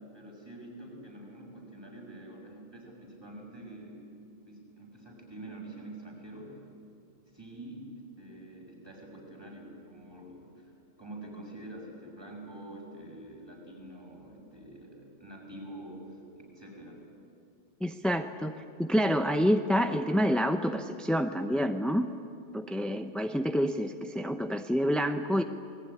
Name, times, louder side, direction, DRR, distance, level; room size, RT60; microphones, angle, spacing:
voice 1, 0.1-6.6 7.3-17.0, right 1 dB, 20° right, -2 dB, 6.7 m, -46 dB
voice 2, 17.8-18.5 18.8-22.1 22.5-25.4, equal, ahead, 7 dB, 0.5 m, -28 dB
27.5 x 20.0 x 10.0 m, 2.5 s
omnidirectional pair, 1.3 m